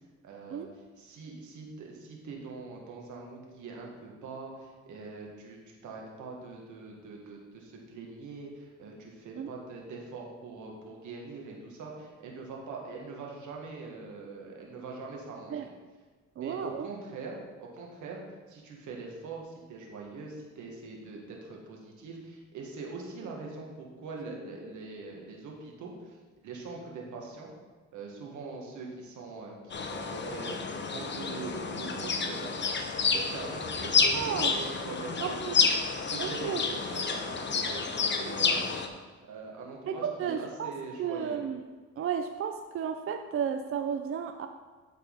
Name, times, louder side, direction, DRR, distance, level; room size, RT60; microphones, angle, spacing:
voice 1, 0.2-0.6 1.0-15.7 16.4-18.2 18.5-26.2 26.4-27.5 27.9-32.7 33.1-35.7 36.1-38.8 39.3-41.4, right 3 dB, 75° right, -1 dB, 1.8 m, -42 dB
voice 2, 16.4-16.9 34.1-34.5 35.2-35.6 36.2-36.6 39.9-40.7 41.0-41.6 42.0-44.5, right 7 dB, 50° right, 7 dB, 0.5 m, -33 dB
sound 1, 29.7-38.9, left 5 dB, 35° left, 0.8 m, -29 dB
12.0 x 4.3 x 4.0 m, 1.4 s
cardioid pair, 90°, 30 cm